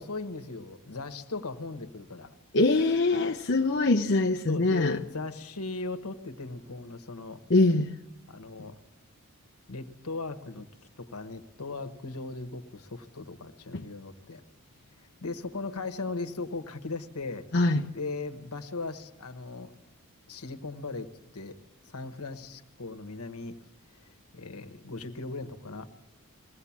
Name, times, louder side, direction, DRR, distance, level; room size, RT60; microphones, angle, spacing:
voice 1, 0.0-2.4 4.5-7.4 8.3-8.8 9.7-10.7 11.0-14.4 15.2-17.5 17.9-19.7 20.3-21.1 21.3-21.5 21.9-23.6 24.3-25.9, left 3 dB, 85° left, 8 dB, 1.3 m, -38 dB
voice 2, 2.5-5.0 7.5-7.9 13.7-13.9 17.5-17.8, left 2 dB, 50° left, 2 dB, 0.8 m, -23 dB
21.5 x 17.0 x 7.3 m, 0.95 s
head